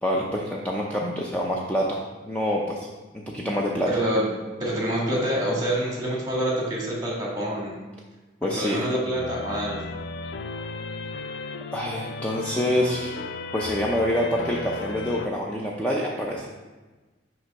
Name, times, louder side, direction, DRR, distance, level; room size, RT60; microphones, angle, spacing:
voice 1, 0.0-2.9 3.1-3.9 8.4-8.8 11.7-13.2 13.5-16.5, equal, 5° left, -3 dB, 0.5 m, -26 dB
voice 2, 3.9-4.3 4.6-7.8 8.5-9.8, equal, 20° right, -4 dB, 1.6 m, -26 dB
sound 1, 9.1-15.3, left 4 dB, 65° left, 0.3 m, -35 dB
6.1 x 3.0 x 5.4 m, 1.2 s
head